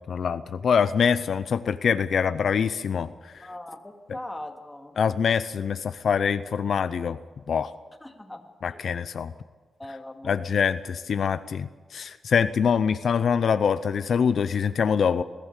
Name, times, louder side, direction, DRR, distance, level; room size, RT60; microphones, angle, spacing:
voice 1, 0.1-3.5 5.0-7.2 7.5-7.7 8.6-9.3 10.2-15.2, left 6 dB, 65° left, 12 dB, 0.6 m, -24 dB
voice 2, 3.4-5.0 8.0-8.8 9.8-10.4, left 1 dB, 10° left, 4 dB, 2.2 m, -40 dB
21.5 x 15.0 x 8.2 m, 1.4 s
wide cardioid pair, 115°, 0 cm